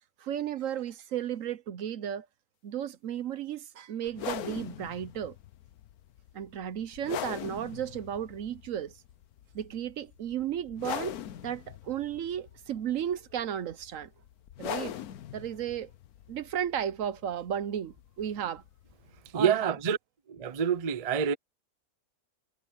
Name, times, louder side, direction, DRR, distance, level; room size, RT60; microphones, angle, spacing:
voice 1, 0.2-2.3 2.6-5.4 6.3-8.9 9.5-11.2 11.4-14.1 14.6-14.9 15.3-15.9 16.3-18.6 19.3-19.8, right 9 dB, 65° right, 1.0 m, -34 dB
sound 1, 4.1-19.4, left 11 dB, 80° left, 1.3 m, -42 dB
voice 2, 19.3-20.0 20.3-21.3, right 7 dB, 35° right, 0.6 m, -27 dB
omnidirectional pair, 1.6 m